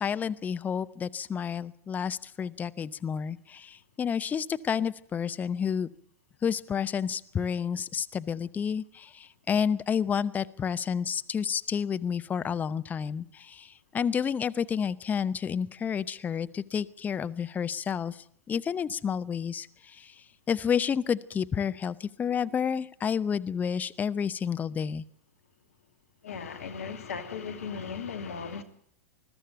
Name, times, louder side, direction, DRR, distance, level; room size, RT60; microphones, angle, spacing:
voice 1, 0.0-5.9 6.4-25.0, left 7 dB, 20° left, 0.8 m, -30 dB
voice 2, 26.2-28.6, left 6 dB, 70° left, 2.5 m, -37 dB
21.5 x 13.5 x 9.1 m
figure-of-eight pair, 95°, 8 cm